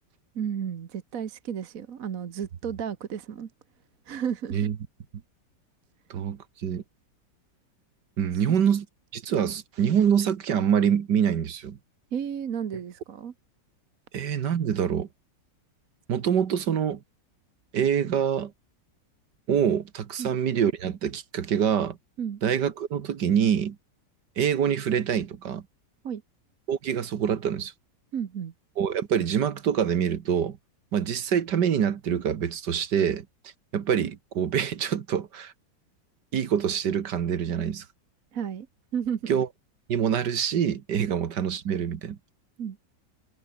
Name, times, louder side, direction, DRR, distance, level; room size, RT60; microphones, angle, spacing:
voice 1, 0.3-3.5 4.0-4.7 8.5-8.6 12.1-13.3 20.2-20.3 22.2-22.4 26.0-26.2 28.1-28.5 38.3-38.7 38.9-39.3 41.1-41.2 42.6-42.8, right 8 dB, 50° right, 1.5 m, -32 dB
voice 2, 6.1-6.8 8.2-8.9 9.1-11.8 14.1-15.1 16.1-17.0 17.7-18.5 19.5-22.0 22.4-23.8 24.4-25.6 26.7-27.7 28.8-30.6 30.9-33.3 33.7-35.5 36.3-37.9 39.3-39.5 39.9-42.2, right 8 dB, 70° right, 1.9 m, -25 dB
omnidirectional pair, 2.0 m